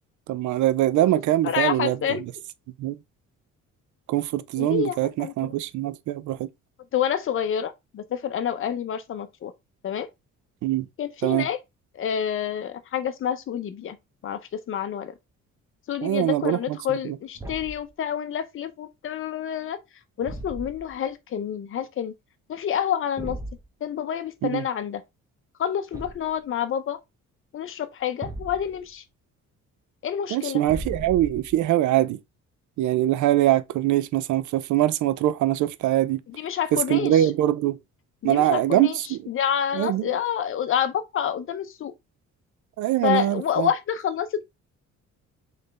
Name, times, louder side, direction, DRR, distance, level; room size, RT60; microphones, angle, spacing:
voice 1, 0.3-2.0 2.8-3.0 4.1-6.5 10.6-10.8 11.2-11.5 16.0-16.8 17.1-17.2 24.4-24.6 30.3-32.2 32.8-36.2 36.7-37.8 38.2-39.2 39.7-40.0 42.8-43.7, right 13 dB, 80° right, 0.5 m, -23 dB
voice 2, 1.4-2.2 4.6-5.5 6.9-9.5 9.8-10.1 11.0-11.6 11.9-14.0 14.2-15.1 15.9-19.8 20.2-22.1 22.5-23.4 23.8-25.0 25.6-27.0 27.5-29.0 30.0-30.6 36.3-37.3 38.2-41.9 43.0-44.4, left 9 dB, 45° left, 0.6 m, -28 dB
Thump thud, 17.3-17.9 20.2-20.9 23.2-23.6 25.9-26.4 28.2-28.8 30.6-31.6, right 1 dB, 10° right, 0.9 m, -37 dB
4.3 x 3.2 x 3.2 m
cardioid pair, 155°, 29 cm